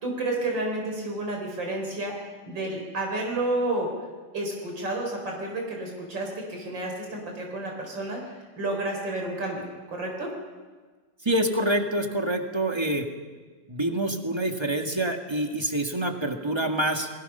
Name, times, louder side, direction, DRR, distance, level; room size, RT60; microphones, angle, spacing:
voice 1, 0.0-3.9 4.3-10.3, right 2 dB, 85° right, 1 dB, 4.8 m, -31 dB
voice 2, 11.2-13.1 13.7-17.1, right 1 dB, 15° right, 4 dB, 1.8 m, -26 dB
30.0 x 20.5 x 5.6 m, 1.4 s
omnidirectional pair, 2.0 m